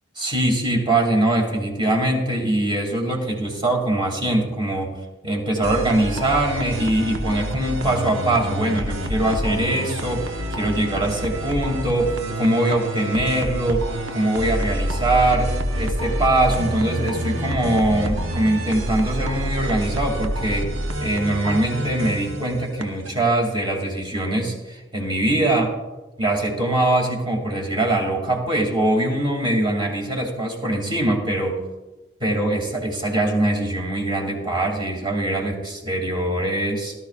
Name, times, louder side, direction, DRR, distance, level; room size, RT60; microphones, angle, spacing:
voice 1, 0.2-4.9 5.2-13.9 14.1-20.7 21.0-25.8 26.2-31.6 32.2-36.9, right 1 dB, 25° right, 0 dB, 2.5 m, -22 dB
sound 1, 5.6-23.1, equal, 90° right, 1.2 m, -28 dB
18.0 x 13.0 x 2.5 m, 1.1 s
head